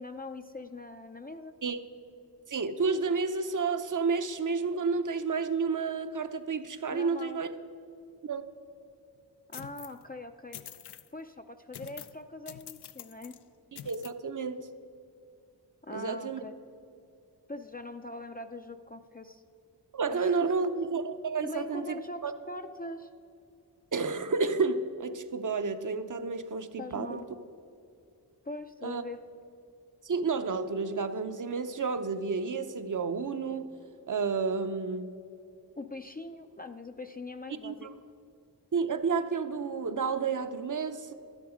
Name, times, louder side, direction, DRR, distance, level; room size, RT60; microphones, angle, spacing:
voice 1, 0.0-1.5 6.9-7.4 9.5-10.6 11.1-13.4 15.8-16.5 17.5-19.4 20.1-20.5 21.4-23.1 26.8-27.3 28.4-29.2 35.8-37.9, left 2 dB, 20° left, 6 dB, 0.5 m, -42 dB
voice 2, 2.5-7.5 8.2-8.5 13.7-14.7 15.9-16.4 19.9-22.3 23.9-27.2 28.8-29.0 30.0-33.7 34.1-35.2 37.6-37.9 38.7-41.1, right 4 dB, 50° right, 10 dB, 0.7 m, -31 dB
sound 1, 9.5-10.0 10.5-11.1 11.7-12.2 12.5-13.4 13.7-14.1, left 10 dB, 75° left, 0.5 m, -46 dB
12.0 x 10.0 x 5.0 m, 2.5 s
cardioid pair, 55°, 41 cm